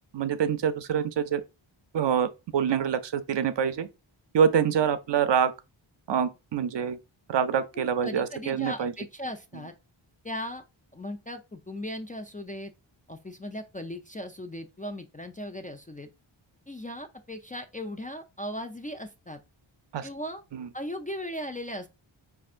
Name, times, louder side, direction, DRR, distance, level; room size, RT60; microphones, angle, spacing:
voice 1, 0.1-1.4 1.9-3.9 4.3-5.5 6.1-7.0 7.3-8.9 19.9-20.1 20.5-20.7, right 7 dB, 65° right, 0.5 m, -26 dB
voice 2, 7.7-9.7 10.2-10.6 10.9-12.7 13.1-16.1 16.7-19.4 20.0-20.4 20.7-21.9, left 1 dB, 20° left, 0.3 m, -37 dB
5.3 x 2.5 x 2.4 m
wide cardioid pair, 80°, 47 cm